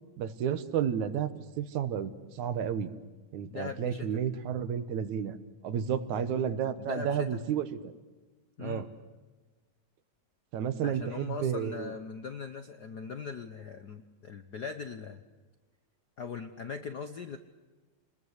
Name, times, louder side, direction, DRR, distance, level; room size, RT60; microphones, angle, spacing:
voice 1, 0.2-2.9 3.3-5.4 5.6-7.9 8.6-8.9 10.5-11.9, right 8 dB, 80° right, 11 dB, 2.6 m, -31 dB
voice 2, 3.5-4.1 6.2-6.3 6.7-7.3 8.6-8.9 10.8-15.2 16.2-17.4, left 6 dB, 75° left, 8 dB, 0.9 m, -40 dB
29.0 x 21.0 x 8.1 m, 1.3 s
omnidirectional pair, 3.3 m